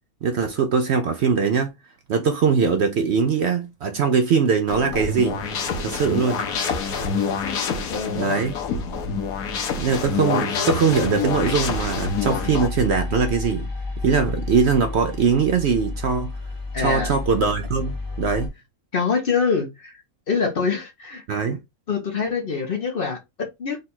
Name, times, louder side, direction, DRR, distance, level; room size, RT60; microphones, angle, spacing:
voice 1, 0.2-1.7 2.1-5.4 5.8-6.4 8.2-8.5 9.8-13.7 14.0-16.3 16.8-18.5 21.3-21.6, right 5 dB, 65° right, 0.7 m, -21 dB
sound 1, 4.7-12.7, left 5 dB, 85° left, 1.3 m, -26 dB
voice 2, 7.9-8.4 16.7-17.1 18.9-20.0 20.3-21.2 21.9-23.8, left 5 dB, 45° left, 0.9 m, -25 dB
sound 2, 8.4-10.2 10.8-18.5, left 3 dB, 20° left, 0.7 m, -32 dB
3.8 x 2.4 x 4.2 m
omnidirectional pair, 1.5 m